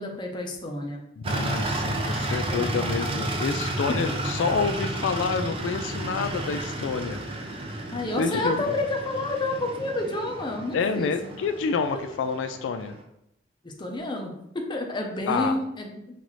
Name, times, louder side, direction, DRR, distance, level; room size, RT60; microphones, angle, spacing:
voice 1, 0.0-1.0 2.4-3.1 3.9-4.0 7.8-11.3 11.9-12.0 13.6-16.0, left 2 dB, 25° left, 1 dB, 0.6 m, -30 dB
voice 2, 1.2-7.6 8.2-8.6 10.7-13.0 15.3-15.6, left 5 dB, 85° left, 9 dB, 0.3 m, -28 dB
sound 1, 1.2-13.0, right 1 dB, 30° right, 0.5 m, -32 dB
5.6 x 2.6 x 3.0 m, 0.81 s
head